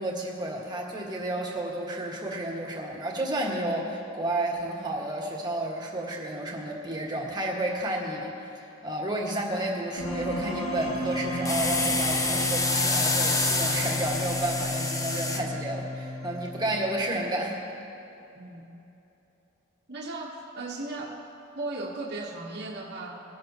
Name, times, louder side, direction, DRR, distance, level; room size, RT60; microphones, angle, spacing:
voice 1, 0.0-17.6, right 1 dB, 20° right, -2 dB, 1.7 m, -31 dB
sound 1, 10.0-17.0, left 1 dB, 80° left, 1.6 m, -33 dB
sound 2, 11.4-15.4, left 2 dB, 15° left, 0.8 m, -27 dB
voice 2, 19.9-21.2 21.5-23.2, right 2 dB, 50° right, -2 dB, 1.3 m, -36 dB
20.5 x 12.0 x 3.0 m, 3.0 s
head